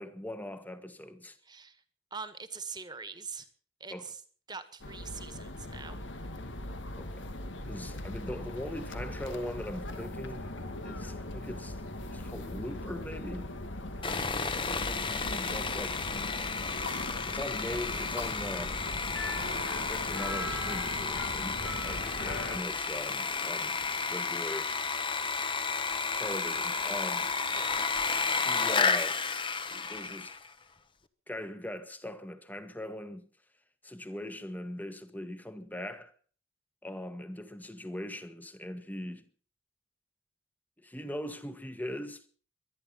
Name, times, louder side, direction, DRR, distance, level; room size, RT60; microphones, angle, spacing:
voice 1, 0.0-1.4 3.9-4.1 6.9-7.3 7.6-11.8 12.1-13.5 14.9-16.3 17.2-18.9 19.9-23.8 24.1-24.8 26.2-27.3 28.4-29.2 29.7-30.4 31.3-33.3 33.8-36.1 36.8-39.3 40.8-42.3, left 1 dB, 10° left, 1.4 m, -40 dB
voice 2, 1.4-1.8 2.1-3.5 3.8-4.2 4.5-6.0 14.1-14.6 27.5-27.9, right 5 dB, 20° right, 1.6 m, -43 dB
sound 1, 4.8-22.6, left 1 dB, 80° left, 2.0 m, -39 dB
Sawing, 14.0-30.5, left 4 dB, 25° left, 1.1 m, -32 dB
sound 2, 14.9-27.6, left 2 dB, 60° left, 2.8 m, -55 dB
23.5 x 10.5 x 5.6 m
head